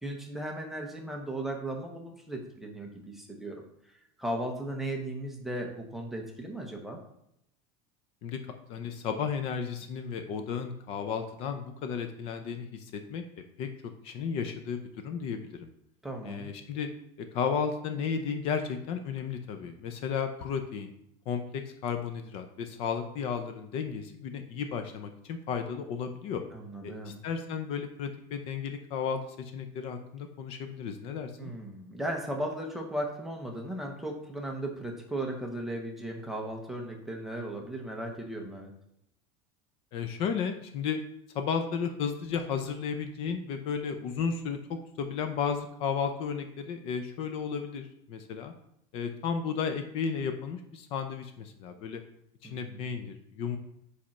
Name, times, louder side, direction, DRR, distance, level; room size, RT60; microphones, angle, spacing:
voice 1, 0.0-3.6 4.2-7.0 16.0-16.5 26.5-27.2 31.4-38.7 52.4-52.9, right 1 dB, ahead, 0 dB, 0.6 m, -36 dB
voice 2, 8.2-13.2 13.6-13.7 14.0-15.7 16.2-16.9 17.3-20.9 21.3-26.4 26.8-31.5 39.9-41.0 41.3-48.5 48.9-52.0 52.4-53.6, left 6 dB, 40° left, 7 dB, 0.5 m, -33 dB
5.1 x 4.2 x 5.8 m, 0.76 s
cardioid pair, 180°, 15 cm